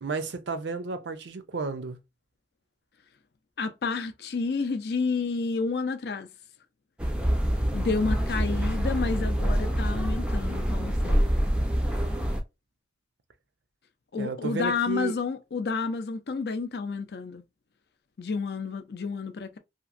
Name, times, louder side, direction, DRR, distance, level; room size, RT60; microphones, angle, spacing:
voice 1, 0.0-2.0 14.2-15.1, right 4 dB, 80° right, 0.5 m, -32 dB
voice 2, 3.6-6.3 7.7-11.3 14.1-17.4 18.2-19.6, left 4 dB, 65° left, 0.4 m, -30 dB
sound 1, 7.0-12.4, equal, 5° right, 0.4 m, -26 dB
2.9 x 2.5 x 2.5 m
head